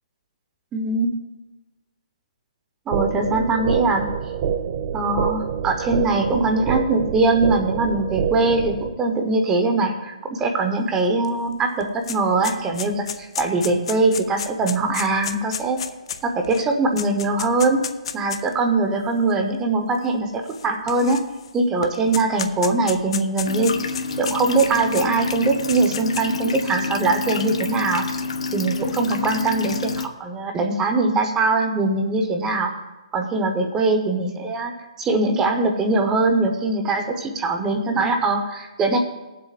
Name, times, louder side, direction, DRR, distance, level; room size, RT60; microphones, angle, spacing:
voice 1, 0.7-1.1 2.9-4.1 4.9-15.8 16.2-17.8 18.1-21.2 21.5-23.7 24.2-28.1 28.5-32.7 33.1-34.7 35.0-39.0, right 3 dB, 15° right, 4 dB, 1.0 m, -22 dB
sound 1, 2.9-8.9, right 8 dB, 40° right, 0.7 m, -26 dB
sound 2, 11.2-11.3 11.6-18.5 19.3-19.4 20.5-21.5 21.8-25.0 25.5-26.4, left 8 dB, 55° left, 0.7 m, -32 dB
sound 3, 23.5-30.1, left 4 dB, 75° left, 1.1 m, -28 dB
20.0 x 7.6 x 2.5 m, 1.1 s
hypercardioid pair, 155°, 3 cm